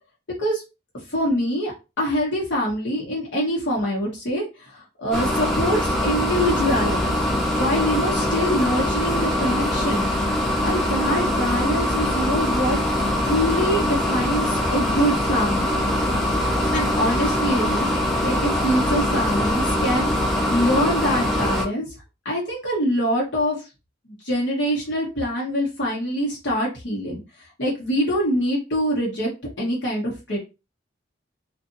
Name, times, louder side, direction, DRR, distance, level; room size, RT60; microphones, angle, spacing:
voice 1, 0.9-1.7 2.0-7.2 7.5-10.1 10.6-12.8 13.2-15.8 16.7-20.1 20.5-21.9 22.2-23.7 24.1-29.3 29.6-30.4, equal, 90° left, -4 dB, 1.1 m, -24 dB
sound 1, 5.1-21.6, left 1 dB, 5° left, 0.6 m, -22 dB
2.6 x 2.5 x 2.6 m, 0.27 s
head